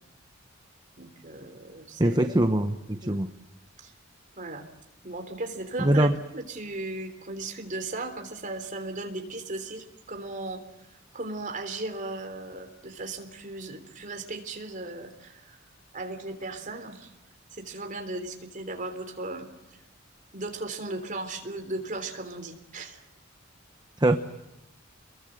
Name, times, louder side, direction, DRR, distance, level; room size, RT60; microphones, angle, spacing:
voice 1, 1.0-2.2 3.0-3.2 3.8-3.9 4.4-4.7 5.0-6.1 6.3-10.6 11.1-15.6 15.9-17.1 17.5-19.5 20.3-23.0, right 2 dB, 40° right, 6 dB, 3.4 m, -36 dB
voice 2, 2.0-3.3 5.8-6.1 24.0-24.2, right 1 dB, 20° right, 8 dB, 1.0 m, -22 dB
28.0 x 22.0 x 7.8 m, 0.91 s
head